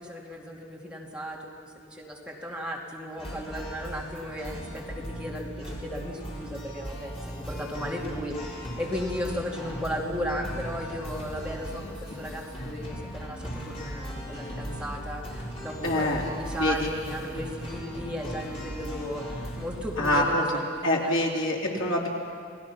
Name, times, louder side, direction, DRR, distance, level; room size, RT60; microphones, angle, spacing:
voice 1, 0.0-21.2, equal, 5° right, -3 dB, 2.5 m, -35 dB
sound 1, 3.2-20.2, equal, 30° left, 4.4 m, -38 dB
voice 2, 15.8-16.2 16.6-16.9 20.0-22.1, left 1 dB, 70° left, -2 dB, 3.5 m, -26 dB
29.5 x 19.0 x 5.9 m, 2.2 s
head